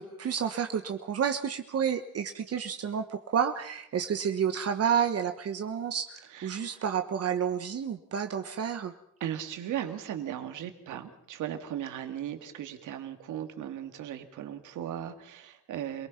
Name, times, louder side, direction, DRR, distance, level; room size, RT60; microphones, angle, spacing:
voice 1, 0.0-8.9, right 7 dB, 55° right, 7 dB, 1.3 m, -30 dB
voice 2, 6.3-6.8 9.2-16.1, right 10 dB, 80° right, 7 dB, 2.2 m, -37 dB
27.0 x 18.5 x 5.8 m, 0.75 s
cardioid pair, 90°, 30 cm